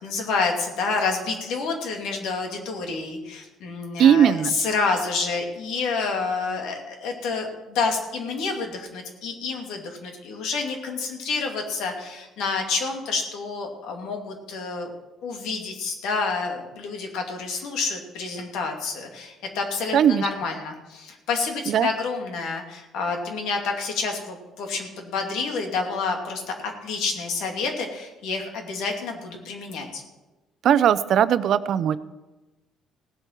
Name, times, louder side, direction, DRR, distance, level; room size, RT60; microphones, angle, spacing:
voice 1, 0.0-14.9 15.2-26.4 26.8-30.0, left 4 dB, 85° left, 2 dB, 2.7 m, -28 dB
voice 2, 4.0-4.5 19.9-20.3 21.7-21.9 30.6-32.0, right 9 dB, 60° right, 14 dB, 0.6 m, -18 dB
17.5 x 8.0 x 6.0 m, 1.1 s
cardioid pair, 120°, 0 cm